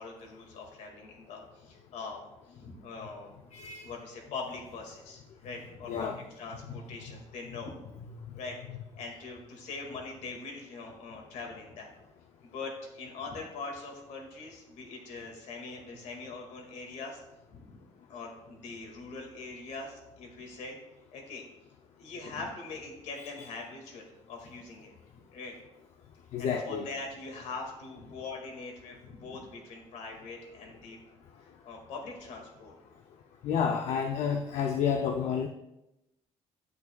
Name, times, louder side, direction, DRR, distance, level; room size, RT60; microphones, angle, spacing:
voice 1, 0.0-3.3 3.8-8.0 8.4-8.6 9.0-11.9 12.4-17.2 17.5-17.8 18.1-20.8 21.1-21.4 22.0-24.9 25.3-25.6 26.4-31.0 31.4-32.7, left 3 dB, 80° left, 1 dB, 1.9 m, -42 dB
voice 2, 3.5-3.9 5.9-6.2 8.3-8.4 26.3-26.9 33.4-35.5, left 7 dB, 65° left, 5 dB, 0.5 m, -30 dB
9.4 x 8.2 x 2.3 m, 0.92 s
cardioid pair, 150°, 12 cm